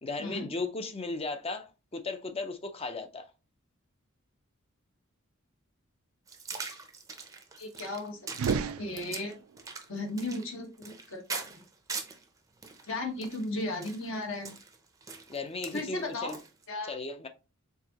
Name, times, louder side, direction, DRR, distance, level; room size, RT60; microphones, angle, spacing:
voice 1, 0.0-3.3 15.3-16.4 16.9-17.3, left 3 dB, 25° left, 0.5 m, -36 dB
sound 1, 6.3-12.2 12.6-16.6, right 4 dB, 15° right, 0.6 m, -42 dB
voice 2, 7.6-8.2 8.5-9.3 9.9-11.6 12.8-14.5 15.7-16.4 16.7-16.9, left 2 dB, 60° left, 1.2 m, -36 dB
sound 2, 8.3-9.6, right 6 dB, 75° right, 0.4 m, -32 dB
4.7 x 3.8 x 2.8 m
head